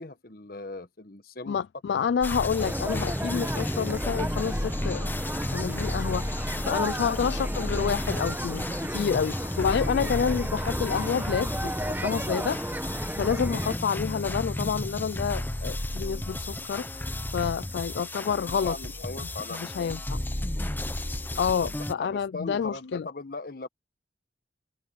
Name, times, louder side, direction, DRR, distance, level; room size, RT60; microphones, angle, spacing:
voice 1, 0.0-1.6 18.6-20.0 21.6-23.7, left 3 dB, 55° left, 1.3 m, -39 dB
voice 2, 1.5-5.1 5.5-12.9 13.2-18.8 19.5-20.2 21.4-23.1, left 7 dB, 70° left, 0.3 m, -29 dB
sound 1, 2.2-21.9, left 1 dB, 10° left, 0.6 m, -33 dB
sound 2, 2.6-13.8, right 1 dB, 10° right, 1.1 m, -34 dB
head